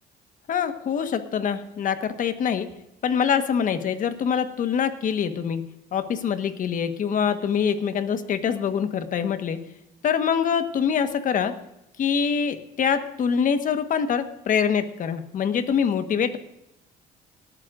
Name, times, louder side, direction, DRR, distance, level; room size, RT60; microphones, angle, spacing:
voice 1, 0.5-2.7 3.0-9.6 10.0-11.5 12.0-16.4, left 7 dB, 50° left, 9 dB, 1.3 m, -24 dB
19.0 x 13.0 x 2.5 m, 0.83 s
cardioid pair, 110°, 17 cm